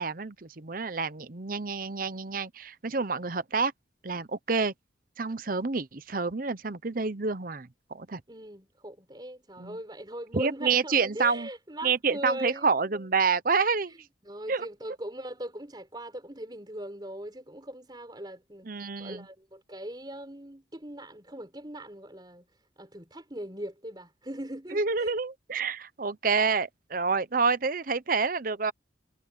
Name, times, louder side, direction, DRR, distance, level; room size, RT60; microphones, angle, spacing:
voice 1, 0.0-3.7 4.0-4.7 5.2-8.2 9.6-9.8 10.3-11.5 11.8-13.9 14.5-14.7 18.6-19.3 24.7-28.7, right 4 dB, 50° right, 0.9 m, -28 dB
voice 2, 8.3-12.7 14.2-18.7 19.0-22.4 22.8-25.1, right 1 dB, 25° right, 5.1 m, -40 dB
head